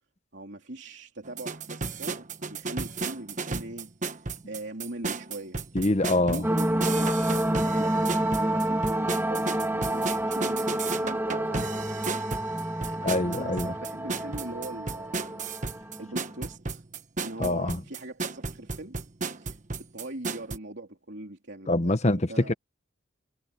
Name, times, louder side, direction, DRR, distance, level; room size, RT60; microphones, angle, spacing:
voice 1, 0.3-5.6 6.2-11.9 12.8-16.8 17.2-19.0 19.3-22.0 22.3-22.6, right 1 dB, 60° right, 3.6 m, -41 dB
sound 1, 1.3-20.6, right 4 dB, 40° right, 1.2 m, -34 dB
voice 2, 5.7-6.5 13.0-13.7 17.4-17.8 21.7-22.5, left 2 dB, 35° left, 1.1 m, -25 dB
sound 2, 6.4-16.4, right 1 dB, 10° right, 2.9 m, -28 dB
head